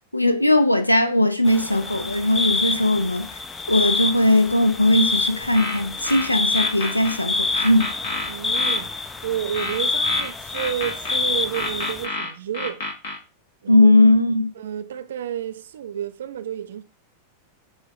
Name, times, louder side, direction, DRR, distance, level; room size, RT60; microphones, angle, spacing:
voice 1, 0.1-3.3 3.7-7.9 13.7-14.5, left 1 dB, 85° left, 0.4 m, -18 dB
sound 1, 1.4-12.0, left 3 dB, 20° left, 0.4 m, -27 dB
sound 2, 5.5-7.2 7.5-8.8 9.5-11.2 11.5-13.2, left 2 dB, 55° left, 1.3 m, -30 dB
voice 2, 8.3-8.9 9.2-12.8 13.6-13.9 14.6-16.8, right 10 dB, 60° right, 0.4 m, -30 dB
7.1 x 2.4 x 3.0 m
figure-of-eight pair, 90°, 0 cm